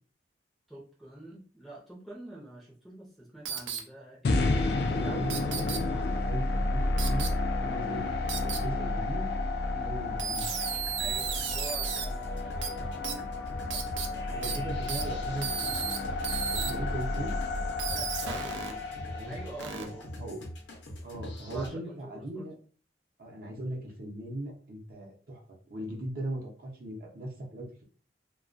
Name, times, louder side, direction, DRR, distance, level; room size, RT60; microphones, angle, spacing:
voice 1, 0.7-4.5 5.0-5.2 8.4-8.6 9.7-10.0 11.0-14.8 17.9-18.9 19.2-20.1 21.5-22.5 23.4-23.5, right 2 dB, ahead, -5 dB, 0.5 m, -46 dB
sound 1, 3.5-3.8 5.3-5.8 7.0-7.3 8.3-8.6 10.2-12.1 12.6-12.7 13.0-13.1 13.7-14.1 14.4-14.6 14.9-15.0 15.4-16.0 16.2-16.7 17.8-18.7 19.6-19.8, right 8 dB, 85° right, 0.4 m, -33 dB
sound 2, 4.2-20.4, left 2 dB, 60° left, 0.3 m, -31 dB
voice 2, 4.8-7.3 7.6-9.2 9.8-10.5 14.3-16.2 16.7-17.3 19.1-19.3 19.7-19.9 20.2-20.4 21.0-22.5 23.2-25.4 25.7-27.8, right 1 dB, 50° right, -1 dB, 0.7 m, -38 dB
sound 3, 10.4-21.7, left 1 dB, 80° left, 0.7 m, -44 dB
2.2 x 2.2 x 2.5 m, 0.42 s
head